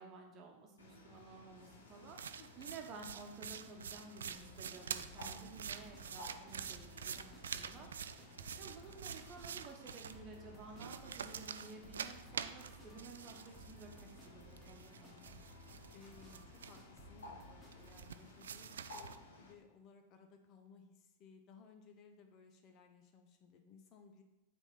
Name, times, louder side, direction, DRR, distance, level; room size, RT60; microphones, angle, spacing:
voice 1, 0.0-15.3, right 4 dB, 30° right, 2 dB, 1.1 m, -54 dB
Bird, 0.8-19.5, left 2 dB, 65° left, 1.2 m, -58 dB
sound 1, 2.1-10.1 10.7-14.3 14.6-17.0 17.7-19.2, right 7 dB, 65° right, 0.3 m, -46 dB
sound 2, 4.3-18.0, equal, ahead, 1.7 m, -59 dB
voice 2, 15.9-24.2, left 5 dB, 35° left, 5 dB, 0.7 m, -61 dB
6.0 x 3.5 x 5.7 m, 1.0 s
figure-of-eight pair, 90°, 0 cm